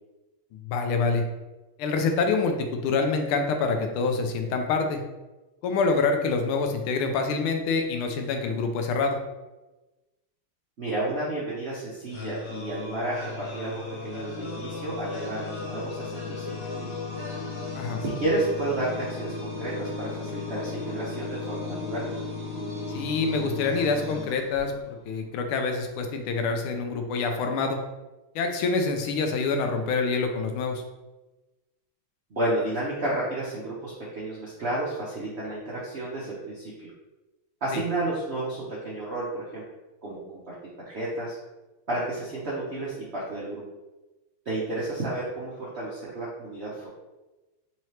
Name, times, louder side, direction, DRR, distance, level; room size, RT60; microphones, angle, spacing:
voice 1, 0.5-1.3 1.8-5.0 5.6-9.2 17.7-18.0 22.9-27.8 28.3-30.8 37.7-37.8, left 4 dB, 85° left, 5 dB, 1.5 m, -26 dB
voice 2, 10.8-17.0 18.0-22.0 32.3-36.9 37.6-39.6 40.0-40.2 40.5-40.6 40.8-41.4 41.9-43.6 44.4-46.9, right 2 dB, 65° right, -7 dB, 0.6 m, -31 dB
sound 1, 12.1-25.0, left 3 dB, 60° left, 1.5 m, -35 dB
4.3 x 2.8 x 3.1 m, 1.1 s
omnidirectional pair, 2.3 m